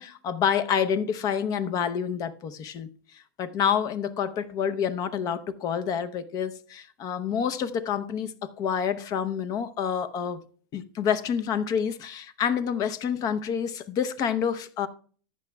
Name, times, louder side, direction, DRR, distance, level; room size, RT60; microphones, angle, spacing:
voice 1, 0.0-2.9 3.4-10.4 10.7-14.9, left 7 dB, 40° left, 0.7 m, -28 dB
14.5 x 9.7 x 2.3 m
supercardioid pair, 120°, 10 cm